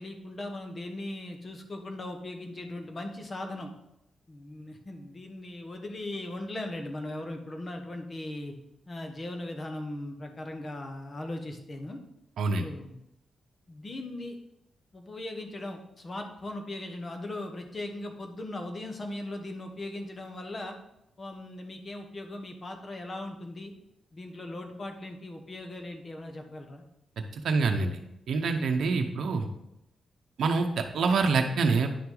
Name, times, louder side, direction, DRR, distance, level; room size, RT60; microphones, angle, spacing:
voice 1, 0.0-3.7 4.3-8.5 8.9-12.0 12.6-12.9 13.7-14.3 14.9-20.8 21.2-23.7 24.1-26.8, left 1 dB, 30° left, 4 dB, 1.1 m, -38 dB
voice 2, 27.4-27.9 28.3-29.5 30.4-31.9, right 4 dB, 70° right, 4 dB, 0.8 m, -26 dB
10.0 x 5.8 x 3.9 m, 0.83 s
wide cardioid pair, 135°, 0 cm